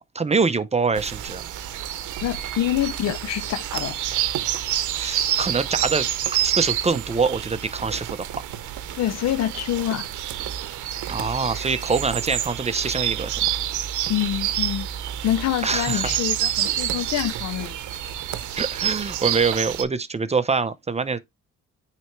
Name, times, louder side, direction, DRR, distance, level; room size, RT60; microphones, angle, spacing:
voice 1, 0.0-1.4 5.0-6.1 6.4-8.4 11.1-13.4 15.6-16.1 18.5-21.2, right 4 dB, 20° right, 0.6 m, -24 dB
sound 1, 0.9-19.8, right 11 dB, 75° right, 0.8 m, -28 dB
voice 2, 2.2-4.0 9.0-10.1 14.1-14.9 15.2-17.8, left 12 dB, 60° left, 0.5 m, -26 dB
9.0 x 3.4 x 3.1 m
cardioid pair, 90°, 30 cm